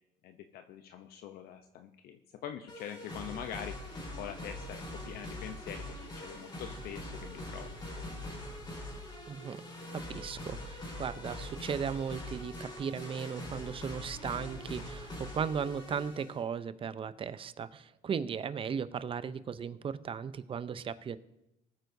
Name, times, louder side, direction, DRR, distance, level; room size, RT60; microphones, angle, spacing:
voice 1, 0.2-7.7, left 9 dB, 70° left, 6 dB, 0.7 m, -44 dB
sound 1, 2.7-16.4, left 1 dB, 25° left, 3.9 m, -43 dB
voice 2, 9.3-9.6 9.9-21.2, right 7 dB, 35° right, 14 dB, 0.6 m, -36 dB
19.5 x 9.2 x 2.7 m, 0.89 s
cardioid pair, 100°, 16 cm